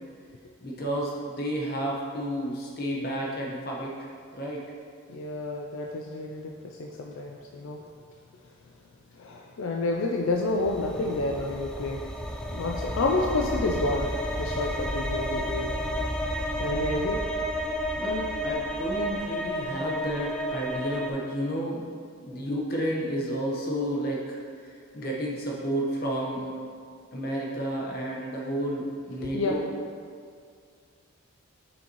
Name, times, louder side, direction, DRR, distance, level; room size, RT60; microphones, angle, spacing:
voice 1, 0.6-4.6 17.9-21.8 22.2-26.5 27.1-29.7, equal, 45° left, -3 dB, 1.1 m, -31 dB
voice 2, 5.1-7.8 9.2-12.0 12.5-15.7 16.6-17.2 29.3-29.5, left 2 dB, 75° left, 0 dB, 0.4 m, -29 dB
sound 1, 10.4-21.1, equal, 5° left, 0.3 m, -31 dB
7.0 x 5.6 x 3.0 m, 2.2 s
head